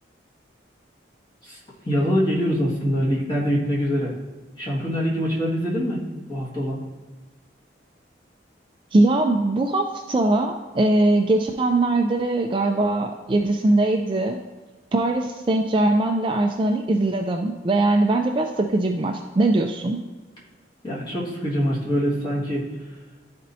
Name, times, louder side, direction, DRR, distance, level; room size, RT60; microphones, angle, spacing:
voice 1, 1.9-4.2 4.6-6.0 6.3-6.8 20.8-22.7, equal, 25° left, -6 dB, 1.8 m, -24 dB
voice 2, 8.9-14.4 14.9-20.0, right 2 dB, 25° right, 4 dB, 0.3 m, -21 dB
11.5 x 4.3 x 2.7 m, 1.3 s
head